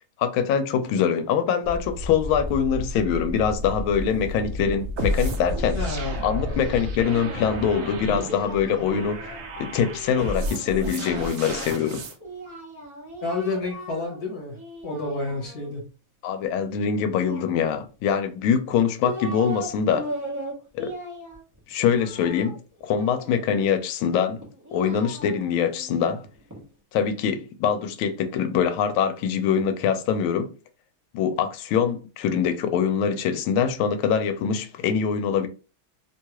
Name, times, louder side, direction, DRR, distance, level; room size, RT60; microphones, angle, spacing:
voice 1, 0.2-5.8 6.2-12.0 16.2-20.1 20.7-20.9 21.7-24.4 24.7-26.2 26.9-30.5 31.1-35.5, left 7 dB, 85° left, 1.4 m, -24 dB
sound 1, 1.6-7.0, left 1 dB, 45° right, 0.8 m, -32 dB
sound 2, 5.0-12.1, right 1 dB, 75° right, 0.7 m, -32 dB
voice 2, 5.7-6.2 8.7-9.1 13.2-14.6 14.8-15.8, left 3 dB, 55° left, 1.3 m, -30 dB
Singing, 7.8-11.1 12.2-14.2 14.5-15.7 17.1-18.1 18.7-19.7 19.9-23.6 24.4-26.6, right 1 dB, 30° right, 0.3 m, -38 dB
3.3 x 2.3 x 2.9 m
omnidirectional pair, 2.2 m